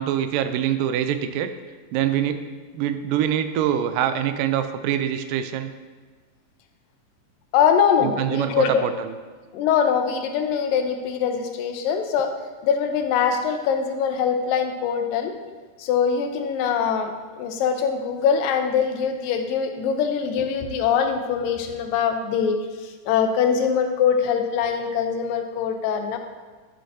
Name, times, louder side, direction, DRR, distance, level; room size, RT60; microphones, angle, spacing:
voice 1, 0.0-1.5 1.9-2.4 2.7-5.7 8.0-9.1, right 10 dB, 85° right, 10 dB, 2.2 m, -24 dB
voice 2, 7.5-8.9 9.5-12.3 12.6-15.4 15.8-26.2, left 7 dB, 90° left, 6 dB, 2.4 m, -23 dB
9.7 x 6.4 x 2.8 m, 1.4 s
omnidirectional pair, 3.9 m